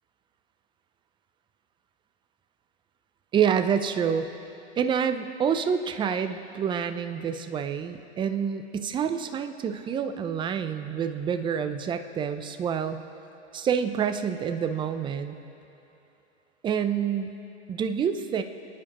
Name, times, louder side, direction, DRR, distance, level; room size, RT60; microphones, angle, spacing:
voice 1, 3.3-4.3 4.8-13.0 13.5-15.4 16.6-17.3 17.7-18.4, right 7 dB, 15° right, 9 dB, 0.5 m, -27 dB
28.5 x 9.7 x 3.0 m, 3.0 s
hypercardioid pair, 120°, 35 cm